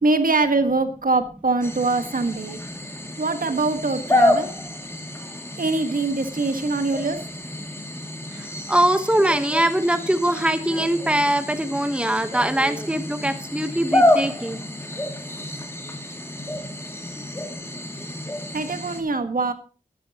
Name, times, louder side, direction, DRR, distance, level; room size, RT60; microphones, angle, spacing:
voice 1, 0.0-2.6 3.2-4.5 5.6-7.2 18.5-19.5, right 3 dB, 65° right, 9 dB, 1.5 m, -23 dB
sound 1, 1.6-19.0, left 1 dB, 15° left, 2.5 m, -28 dB
voice 2, 8.3-14.6 17.2-17.3 18.0-18.1, right 1 dB, 5° right, 9 dB, 1.1 m, -22 dB
13.5 x 13.0 x 2.9 m, 0.37 s
wide cardioid pair, 80°, 15 cm